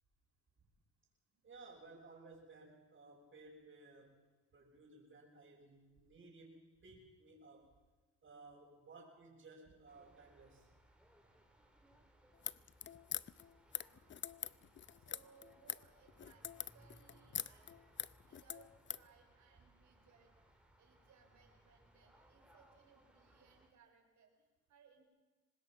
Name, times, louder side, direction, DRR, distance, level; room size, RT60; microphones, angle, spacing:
voice 1, 1.4-4.2 4.5-7.7 8.2-10.7, right 3 dB, 40° right, -7 dB, 6.0 m, -58 dB
sound 1, 9.9-23.7, right 1 dB, 5° right, 3.9 m, -67 dB
sound 2, 12.3-19.1, left 9 dB, 40° left, 0.6 m, -44 dB
voice 2, 13.8-14.3 14.6-25.0, right 6 dB, 70° right, 2 dB, 5.0 m, -68 dB
24.5 x 20.0 x 5.9 m, 1.3 s
cardioid pair, 90°, 30 cm